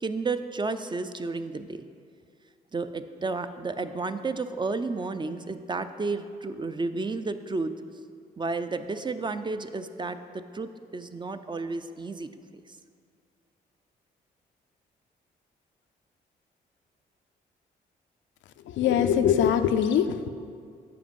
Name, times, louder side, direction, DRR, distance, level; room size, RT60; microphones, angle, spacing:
voice 1, 0.0-1.8 2.7-7.7 8.4-10.2 10.5-12.3, right 3 dB, 25° right, 10 dB, 0.4 m, -32 dB
voice 2, 18.6-20.3, left 8 dB, 75° left, 9 dB, 0.4 m, -22 dB
7.7 x 5.0 x 5.3 m, 2.2 s
supercardioid pair, 55°, 19 cm